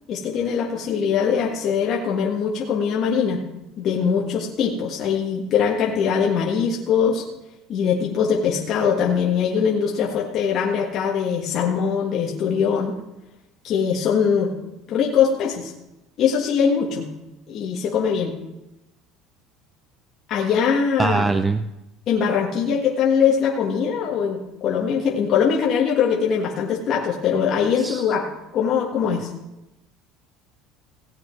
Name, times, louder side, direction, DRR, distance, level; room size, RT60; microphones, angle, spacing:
voice 1, 0.1-3.4 3.8-7.2 7.7-12.9 13.6-14.5 14.9-15.7 16.2-17.1 17.5-18.3 20.3-21.4 22.1-28.3 28.5-29.3, left 7 dB, 50° left, -2 dB, 1.7 m, -22 dB
voice 2, 21.0-21.7 27.8-28.1, right 3 dB, 15° right, 10 dB, 0.5 m, -22 dB
17.0 x 8.5 x 4.6 m, 0.95 s
supercardioid pair, 120°, 0 cm